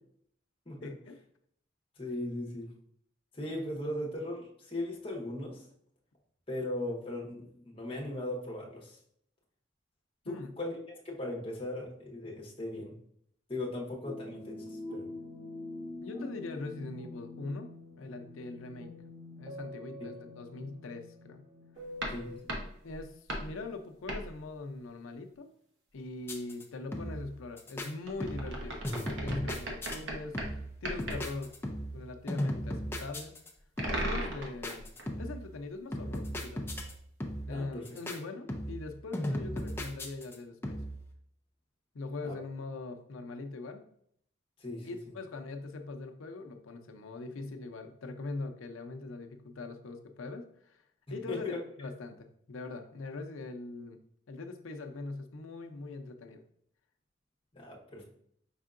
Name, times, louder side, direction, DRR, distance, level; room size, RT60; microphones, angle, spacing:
voice 1, 0.8-1.2 10.2-10.5 16.0-17.7 18.0-18.9 19.3-21.4 22.8-25.5 25.9-30.4 30.8-31.5 31.9-33.3 33.9-34.8 35.2-36.6 37.5-40.8 41.9-43.8 44.8-50.8 51.1-54.0 54.3-56.4, left 3 dB, 90° left, 6 dB, 0.6 m, -41 dB
voice 2, 2.0-2.7 3.3-5.6 6.5-9.0 10.3-10.8 11.0-13.0 13.5-14.6 14.9-15.1 22.1-22.5 37.5-37.8 42.2-42.4 44.6-44.9 51.1-51.6 57.5-58.0, left 1 dB, 25° left, -2 dB, 1.0 m, -38 dB
sound 1, 14.0-22.4, left 2 dB, 30° right, 0.9 m, -45 dB
sound 2, 22.0-23.5 24.1-24.3 28.1-30.6 30.8-31.2 33.8-35.1 36.5-36.6, right 1 dB, 65° right, 0.9 m, -37 dB
sound 3, 26.2-26.6 26.9-27.3 27.6-27.9 28.2-28.6 28.8-30.0 30.3-30.7 31.0-32.0 32.3-33.5 33.8-34.2 34.6-35.4 35.9-36.9 37.2-37.6 37.8-38.2 38.5-38.9 39.1-40.3 40.6-41.0, equal, 10° left, 0.4 m, -36 dB
5.5 x 3.6 x 2.5 m, 0.67 s
head